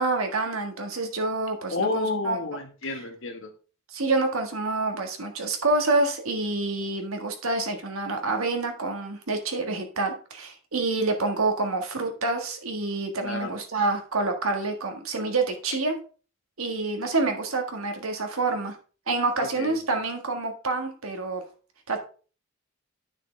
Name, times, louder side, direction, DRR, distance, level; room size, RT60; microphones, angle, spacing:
voice 1, 0.0-2.4 3.9-16.0 16.6-18.7 19.1-21.4 21.9-22.0, right 3 dB, 75° right, 4 dB, 1.6 m, -27 dB
voice 2, 1.7-3.5 13.2-13.5 19.4-20.0, left 3 dB, 60° left, 5 dB, 1.5 m, -30 dB
9.8 x 6.2 x 3.3 m, 0.38 s
head